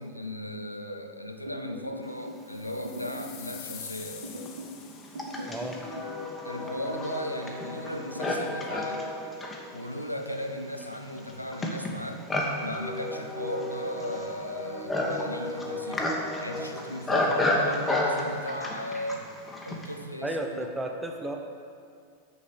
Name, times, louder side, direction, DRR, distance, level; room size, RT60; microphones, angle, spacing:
voice 1, 0.0-4.3 6.4-9.1 9.7-12.3 12.6-19.3 19.6-20.7, left 1 dB, 90° left, 5 dB, 0.6 m, -36 dB
sound 1, 1.5-2.4 2.8-3.4 4.2-4.8 5.1-6.2 6.5-7.1 7.9-8.4, equal, 75° right, 0.9 m, -40 dB
sound 2, 2.4-5.6, left 8 dB, 45° left, 0.8 m, -45 dB
Livestock farm animals working animals, 3.2-3.3 4.0-20.0, left 1 dB, 10° left, 1.1 m, -32 dB
voice 2, 5.5-5.8 17.1-17.3 20.2-21.4, right 1 dB, 5° right, 3 dB, 0.7 m, -33 dB
6.5 x 5.4 x 6.6 m, 2.3 s
figure-of-eight pair, 90°, 0 cm